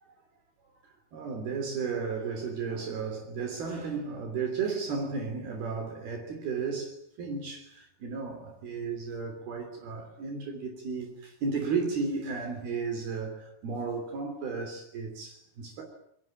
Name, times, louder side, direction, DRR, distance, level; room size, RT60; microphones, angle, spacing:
voice 1, 1.1-15.8, right 5 dB, 60° right, 5.0 m, -34 dB
27.5 x 23.0 x 9.0 m
omnidirectional pair, 5.0 m